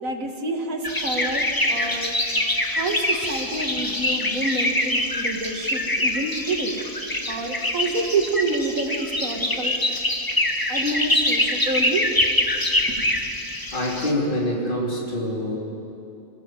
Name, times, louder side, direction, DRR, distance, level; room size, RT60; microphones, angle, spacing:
voice 1, 0.0-2.1 2.7-6.8 7.3-9.8 10.7-12.1 12.9-13.0, right 2 dB, 75° right, 3 dB, 2.5 m, -28 dB
sound 1, 0.8-14.1, left 1 dB, 15° left, 1.5 m, -24 dB
voice 2, 13.7-15.6, left 1 dB, 35° left, -3 dB, 3.5 m, -25 dB
28.0 x 16.0 x 7.6 m, 2.7 s
omnidirectional pair, 1.4 m